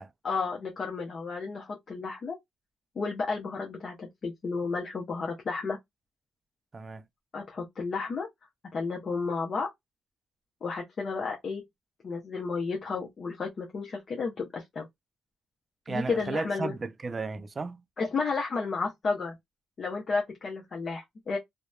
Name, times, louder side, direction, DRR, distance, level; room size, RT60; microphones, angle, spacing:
voice 1, 0.2-2.4 3.0-5.8 7.3-8.3 8.7-9.7 10.6-11.6 12.0-14.9 15.9-16.7 18.0-19.3 19.8-21.4, left 4 dB, 45° left, 0.7 m, -32 dB
voice 2, 15.9-17.8, right 4 dB, 30° right, 0.3 m, -34 dB
2.8 x 2.1 x 2.3 m
cardioid pair, 90°, 0 cm